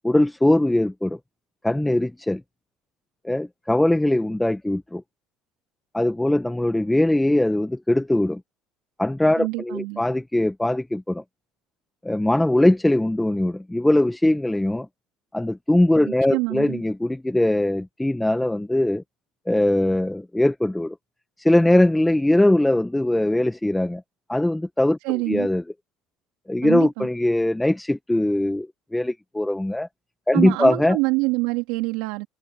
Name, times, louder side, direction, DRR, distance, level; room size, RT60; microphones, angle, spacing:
voice 1, 0.0-1.2 1.6-2.4 3.2-5.0 5.9-8.4 9.0-11.2 12.0-14.9 15.3-19.0 19.5-21.0 21.4-24.0 24.3-25.0 25.3-25.6 26.5-28.7 28.9-29.9 30.3-31.0, left 1 dB, 5° left, 1.5 m, -21 dB
voice 2, 9.4-10.0 16.3-16.8 25.0-25.5 26.6-27.1 30.3-32.3, right 25 dB, 80° right, 2.9 m, -25 dB
supercardioid pair, 90°, 0 cm